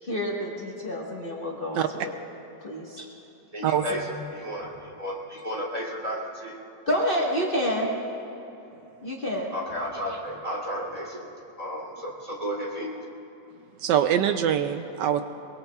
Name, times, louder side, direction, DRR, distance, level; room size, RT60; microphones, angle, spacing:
voice 1, 0.0-2.2 2.6-3.1 4.1-4.2 6.9-7.9 9.0-9.5, equal, 30° left, -3 dB, 1.5 m, -28 dB
voice 2, 3.5-6.6 9.5-11.3 11.6-13.1, equal, 20° right, -5 dB, 3.1 m, -33 dB
voice 3, 13.8-15.2, right 9 dB, 80° right, 8 dB, 1.2 m, -23 dB
22.5 x 22.5 x 2.4 m, 3.0 s
omnidirectional pair, 1.9 m